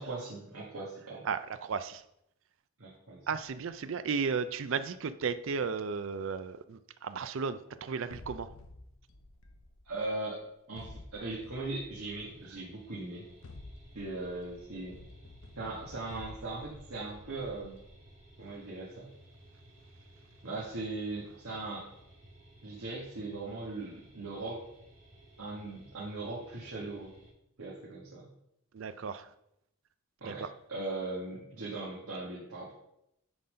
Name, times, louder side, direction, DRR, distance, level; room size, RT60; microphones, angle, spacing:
voice 1, 0.0-1.2 2.8-3.2 9.8-13.2 13.9-15.0 15.6-17.8 18.4-19.1 20.4-21.9 22.6-24.6 25.4-27.1 27.6-28.2 30.2-30.4 30.7-32.7, right 2 dB, 75° right, -6 dB, 1.8 m, -39 dB
voice 2, 1.2-2.0 3.3-8.5 28.7-29.3 30.2-30.5, right 5 dB, 60° right, 12 dB, 0.4 m, -34 dB
sound 1, 8.1-10.2 10.8-12.6 13.3-18.3, left 2 dB, 65° left, 0.8 m, -52 dB
sound 2, 12.1-27.3, right 1 dB, 30° right, 2.3 m, -57 dB
9.7 x 3.8 x 5.2 m, 0.80 s
head